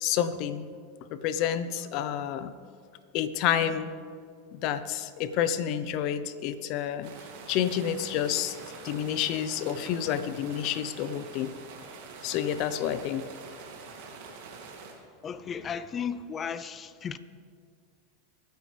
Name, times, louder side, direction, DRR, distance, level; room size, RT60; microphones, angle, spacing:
voice 1, 0.0-0.7 1.1-2.5 3.1-3.9 4.5-7.1 7.5-8.6 8.8-11.5 12.2-13.3, left 10 dB, 55° left, 12 dB, 0.9 m, -29 dB
sound 1, 7.0-14.9, right 4 dB, 60° right, 2.8 m, -45 dB
voice 2, 15.2-17.2, left 7 dB, 30° left, 14 dB, 0.7 m, -35 dB
24.5 x 9.4 x 3.5 m, 2.1 s
hypercardioid pair, 95°, 0 cm